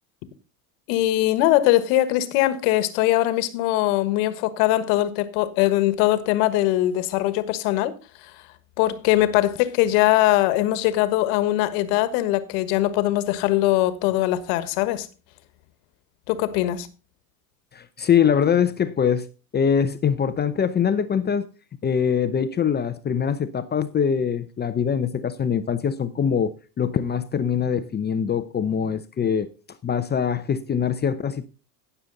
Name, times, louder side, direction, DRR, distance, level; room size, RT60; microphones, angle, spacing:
voice 1, 0.9-7.9 8.8-15.1 16.3-16.9, left 15 dB, 60° left, 1.5 m, -21 dB
voice 2, 17.7-19.3 19.5-21.5 21.8-29.5 29.8-31.4, left 7 dB, 20° left, 0.7 m, -23 dB
16.0 x 7.0 x 3.9 m
supercardioid pair, 105°, 46 cm